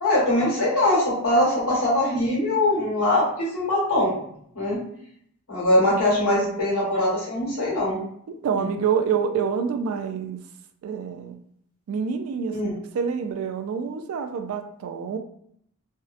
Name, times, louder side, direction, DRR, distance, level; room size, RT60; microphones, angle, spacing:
voice 1, 0.0-4.2 4.5-4.8 5.5-8.0 8.5-8.7 12.5-12.7, left 1 dB, 75° left, 1.1 m, -22 dB
voice 2, 8.3-10.4 10.8-11.4 11.9-15.2, right 6 dB, 80° right, 0.3 m, -27 dB
2.7 x 2.0 x 2.4 m
head